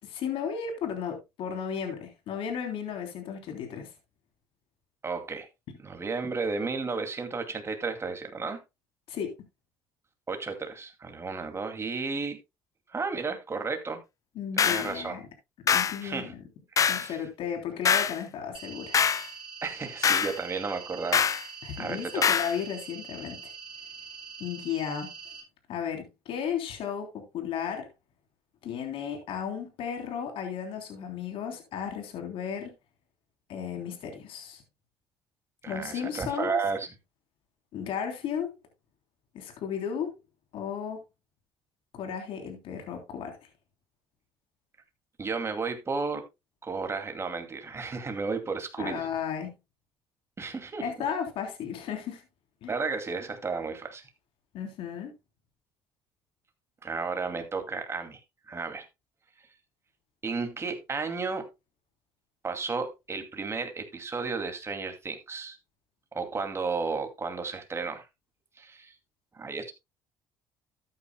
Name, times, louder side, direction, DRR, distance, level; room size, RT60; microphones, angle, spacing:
voice 1, 0.0-3.9 9.1-9.3 14.3-15.2 15.7-16.4 16.9-19.0 21.6-23.5 24.4-25.1 25.7-27.9 28.6-32.7 33.5-34.6 35.7-36.6 37.7-38.6 39.3-40.1 40.5-41.0 41.9-43.4 48.8-49.5 50.8-52.2 52.6-52.7 54.5-55.1, left 7 dB, 70° left, 3.3 m, -34 dB
voice 2, 5.0-5.5 5.8-8.6 10.3-12.4 12.9-14.0 14.6-15.2 16.0-16.3 16.8-17.2 19.6-21.3 21.8-22.2 35.6-36.9 45.2-46.2 46.6-49.1 50.4-50.9 52.7-54.0 56.8-58.2 58.5-58.9 60.2-61.5 62.4-65.6 66.1-68.1 68.6-69.0 69.3-69.7, right 4 dB, 25° right, 2.4 m, -33 dB
sound 1, 14.6-14.9 15.7-16.0 16.8-17.1 17.8-18.2 18.9-19.3 20.0-20.4 21.1-21.4 22.2-22.5, left 7 dB, 35° left, 0.4 m, -24 dB
sound 2, 18.5-25.4, right 5 dB, 55° right, 3.8 m, -44 dB
13.0 x 9.4 x 2.2 m
cardioid pair, 95°, 10 cm